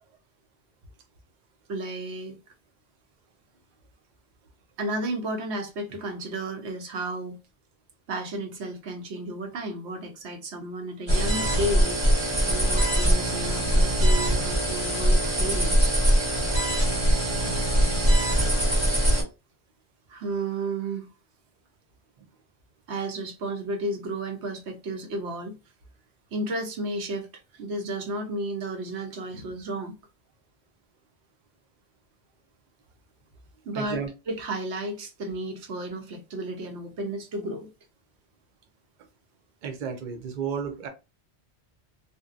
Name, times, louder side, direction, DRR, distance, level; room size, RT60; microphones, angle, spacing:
voice 1, 1.7-2.4 4.8-7.4 8.1-12.1 12.4-15.9 20.1-21.1 22.9-25.6 26.3-27.3 27.5-29.9 33.6-34.0 34.3-37.7, right 1 dB, 80° right, 1.0 m, -33 dB
sound 1, 11.1-19.2, equal, 30° right, 0.9 m, -22 dB
voice 2, 33.7-34.1 39.6-40.9, right 6 dB, 55° right, 0.6 m, -32 dB
2.6 x 2.1 x 2.4 m
omnidirectional pair, 1.1 m